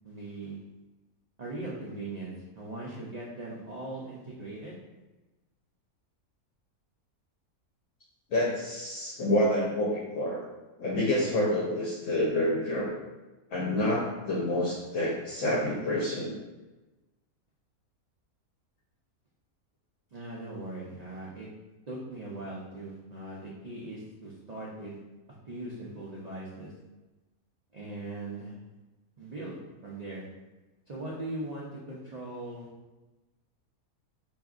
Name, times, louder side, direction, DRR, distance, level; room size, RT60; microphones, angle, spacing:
voice 1, 0.0-0.6 1.4-4.8 20.1-21.5 21.9-25.0 25.4-26.7 27.7-28.6 29.2-30.3 30.9-32.7, right 2 dB, 80° right, -5 dB, 0.3 m, -40 dB
voice 2, 8.3-10.4 10.8-12.9 13.5-16.4, left 1 dB, 65° left, -4 dB, 0.9 m, -28 dB
4.7 x 2.6 x 2.4 m, 1.1 s
omnidirectional pair, 1.5 m